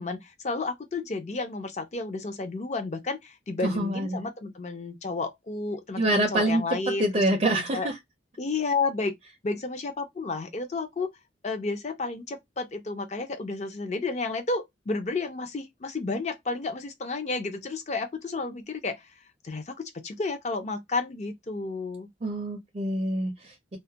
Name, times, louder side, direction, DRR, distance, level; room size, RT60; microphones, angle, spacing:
voice 1, 0.0-7.9 8.4-9.1 9.4-11.1 11.4-19.0 19.4-22.1, left 3 dB, 35° left, 0.5 m, -31 dB
voice 2, 3.6-4.2 6.0-8.0 22.2-23.8, right 1 dB, 35° right, 0.4 m, -26 dB
2.3 x 2.1 x 2.6 m
head